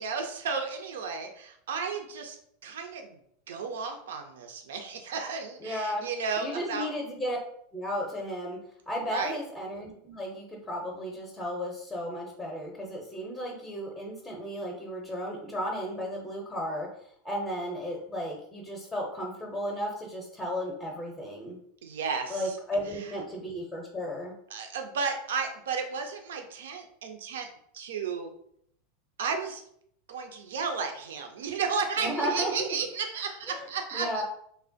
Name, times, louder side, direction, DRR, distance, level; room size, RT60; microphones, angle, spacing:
voice 1, 0.0-2.4 2.6-3.2 3.5-6.9 9.1-9.4 21.8-22.6 23.0-23.1 24.5-27.5 27.7-28.3 29.2-29.6 30.1-34.2, right 5 dB, 70° right, 5 dB, 0.4 m, -33 dB
voice 2, 5.6-6.0 6.4-7.4 7.7-8.6 8.9-16.9 17.2-21.6 22.3-24.3 32.0-32.7 33.5-34.2, equal, 10° left, 0 dB, 0.6 m, -34 dB
3.2 x 2.1 x 2.5 m, 0.69 s
figure-of-eight pair, 85°, 0 cm